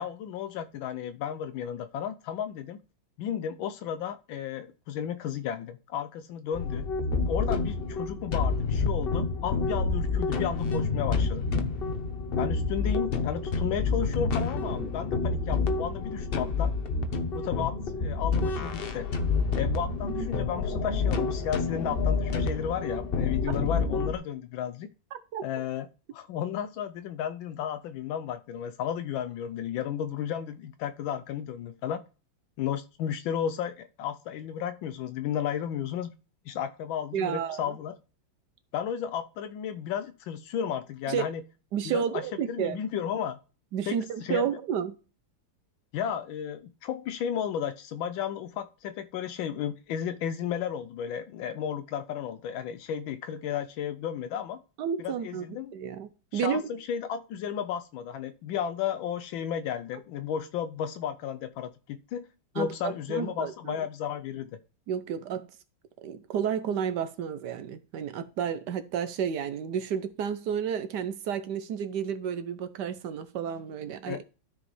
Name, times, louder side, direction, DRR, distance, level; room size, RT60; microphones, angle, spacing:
voice 1, 0.0-2.8 3.2-6.9 7.3-11.4 12.4-16.7 17.3-19.1 19.5-24.9 25.4-25.9 26.1-32.0 32.6-36.1 36.5-37.9 38.7-41.4 41.8-43.4 43.9-44.4 45.9-54.6 55.0-55.7 56.3-62.3 62.5-64.6 74.1-74.2, left 9 dB, 80° left, 1.4 m, -33 dB
sound 1, 6.5-24.1, left 4 dB, 60° left, 0.6 m, -28 dB
voice 2, 37.1-37.8 41.1-41.3 41.7-42.8 43.7-45.0 54.8-56.6 62.6-63.8 64.9-65.5 66.0-74.2, right 8 dB, 70° right, 1.2 m, -31 dB
13.0 x 5.1 x 3.1 m
omnidirectional pair, 2.1 m